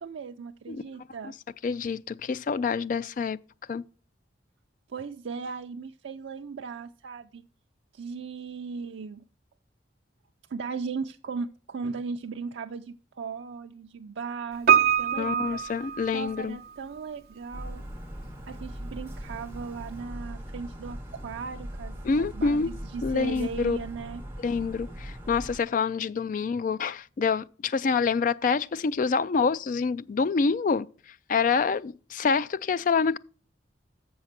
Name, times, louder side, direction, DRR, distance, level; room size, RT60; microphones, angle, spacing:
voice 1, 0.0-1.3 4.9-7.4 7.9-9.2 10.5-15.6 16.1-17.8 18.5-24.2, right 5 dB, 80° right, 0.4 m, -37 dB
voice 2, 1.6-3.4 3.7-3.8 15.2-16.6 22.0-22.7 23.0-23.8 24.4-30.9 31.3-33.2, left 5 dB, 45° left, 0.3 m, -26 dB
Piano, 14.7-16.7 17.0-17.1, right 8 dB, 50° right, 0.8 m, -24 dB
sound 1, 17.5-25.6, equal, 15° right, 1.4 m, -40 dB
7.3 x 6.3 x 5.8 m
head